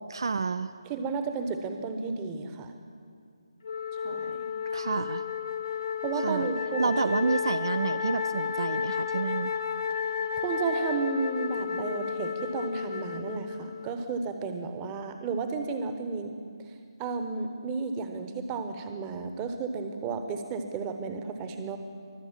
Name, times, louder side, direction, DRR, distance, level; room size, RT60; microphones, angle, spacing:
voice 1, 0.1-0.7 4.7-5.2 6.2-6.5 6.8-9.5, right 4 dB, 60° right, 13 dB, 0.4 m, -29 dB
voice 2, 0.8-2.8 4.0-4.4 6.0-6.9 10.4-16.3 17.0-21.8, right 4 dB, 20° right, 7 dB, 1.0 m, -33 dB
Wind instrument woodwind instrument, 3.6-14.0, left 7 dB, 55° left, 0.7 m, -32 dB
23.0 x 8.0 x 7.4 m, 2.3 s
figure-of-eight pair, 150°, 3 cm